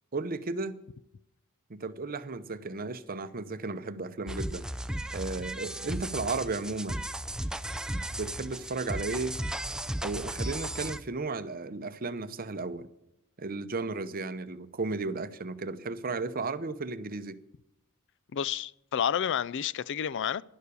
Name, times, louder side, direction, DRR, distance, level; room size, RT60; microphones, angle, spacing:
voice 1, 0.1-0.8 1.7-4.7 5.1-7.0 7.9-9.4 10.0-12.9 13.4-17.4, right 3 dB, 40° right, 0.7 m, -34 dB
sound 1, 4.3-11.0, right 1 dB, 5° right, 0.5 m, -35 dB
voice 2, 18.3-20.4, left 8 dB, 55° left, 0.4 m, -30 dB
11.5 x 11.5 x 6.9 m
head